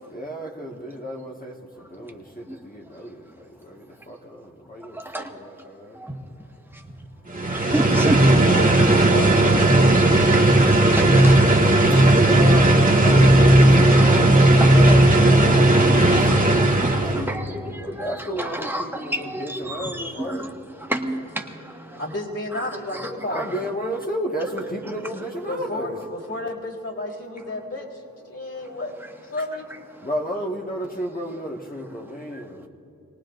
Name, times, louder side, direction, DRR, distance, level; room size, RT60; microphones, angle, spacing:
voice 1, 0.1-6.0 12.1-20.5 23.3-26.0 30.0-32.7, right 1 dB, 25° left, -1 dB, 1.7 m, -33 dB
sound 1, 7.3-17.3, right 1 dB, 25° right, 1.7 m, -15 dB
voice 2, 7.5-8.2 8.7-8.9 9.9-10.4 10.9-11.5 13.9-14.2 14.6-14.8 15.4-20.5 20.9-21.4 21.9-22.0 22.5-23.6, right 1 dB, 5° right, 1 dB, 1.7 m, -30 dB
voice 3, 8.2-13.5 20.8-20.9 21.4-21.6 21.9-23.9 25.5-29.7 30.1-30.2, left 1 dB, 45° left, -4 dB, 3.9 m, -33 dB
26.0 x 19.0 x 2.6 m, 2.9 s
cardioid pair, 45°, 33 cm